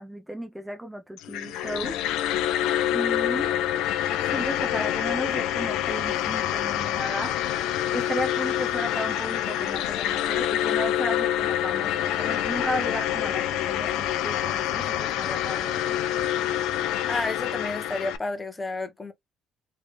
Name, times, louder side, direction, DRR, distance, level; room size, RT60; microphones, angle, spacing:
voice 1, 0.0-2.0 2.9-3.5 4.3-7.5 7.9-16.0, equal, 10° right, 0.6 m, -34 dB
sound 1, 1.2-18.2, left 11 dB, 80° left, 0.5 m, -26 dB
voice 2, 17.1-19.1, left 3 dB, 25° left, 1.0 m, -31 dB
3.3 x 3.3 x 2.5 m
supercardioid pair, 80°, 0 cm